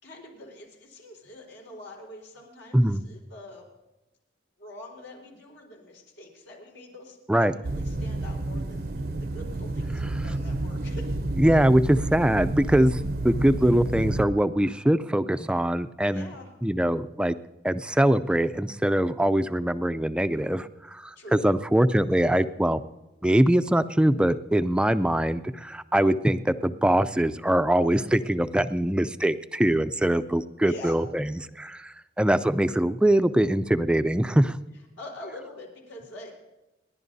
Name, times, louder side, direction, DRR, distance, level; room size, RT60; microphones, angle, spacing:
voice 1, 0.0-3.7 4.6-11.2 16.1-16.5 21.2-21.4 30.6-31.0 35.0-36.3, left 1 dB, 85° left, -1 dB, 4.4 m, -44 dB
sound 1, 7.6-14.2, right 2 dB, 55° right, 0.6 m, -30 dB
voice 2, 11.4-16.3 16.6-17.4 17.6-22.8 23.2-34.6, right 1 dB, 5° right, 11 dB, 0.4 m, -23 dB
29.5 x 11.0 x 2.7 m, 1.0 s
head